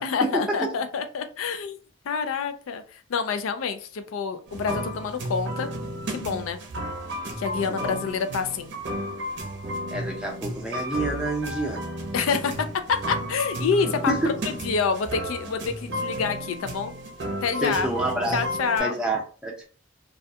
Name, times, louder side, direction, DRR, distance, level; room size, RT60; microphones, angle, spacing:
voice 1, 0.0-1.8 2.0-5.7 6.1-6.6 7.4-8.7 12.1-16.9 17.4-17.9 18.3-19.0, left 5 dB, 75° left, 9 dB, 0.4 m, -27 dB
sound 1, 4.5-18.8, equal, 55° right, 0.6 m, -33 dB
voice 2, 9.9-11.9 14.1-14.2 17.6-18.4 18.8-19.6, right 1 dB, 5° right, -1 dB, 0.5 m, -28 dB
2.3 x 2.2 x 2.6 m, 0.39 s
head